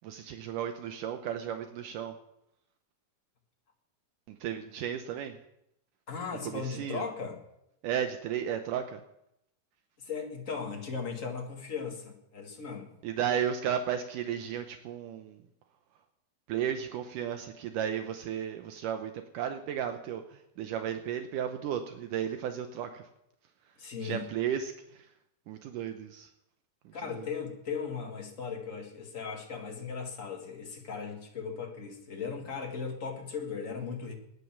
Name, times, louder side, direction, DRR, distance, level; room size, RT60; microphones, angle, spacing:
voice 1, 0.0-2.1 4.3-5.4 6.4-7.0 7.8-9.0 13.0-15.4 16.5-23.1 23.7-23.8 24.0-25.1 25.5-26.3 26.9-27.3, right 9 dB, 75° right, 7 dB, 2.3 m, -34 dB
voice 2, 6.1-7.4 10.0-12.9 23.8-24.3 26.9-34.1, left 5 dB, 30° left, 2 dB, 1.6 m, -37 dB
20.0 x 9.8 x 6.0 m, 0.83 s
omnidirectional pair, 3.9 m